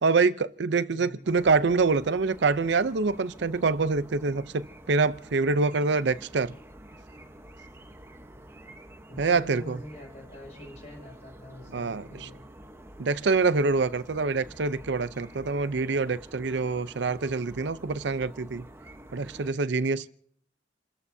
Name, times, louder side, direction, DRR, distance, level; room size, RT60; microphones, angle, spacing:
voice 1, 0.0-6.5 9.2-9.8 11.7-12.3 13.0-18.6 19.1-20.1, right 4 dB, 70° right, 0.6 m, -25 dB
voice 2, 0.9-1.3 9.1-12.4, left 1 dB, 40° left, 7.0 m, -45 dB
sound 1, 1.2-19.5, right 1 dB, 15° right, 1.0 m, -49 dB
29.0 x 14.0 x 2.7 m
head